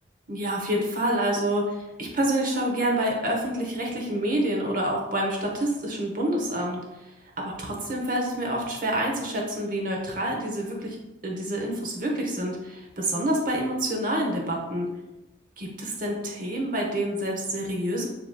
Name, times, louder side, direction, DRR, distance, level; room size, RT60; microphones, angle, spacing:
voice 1, 0.3-6.8 7.4-11.0 11.2-14.9 15.6-18.1, right 1 dB, 45° right, 0 dB, 0.8 m, -27 dB
7.0 x 2.9 x 2.2 m, 1.0 s
head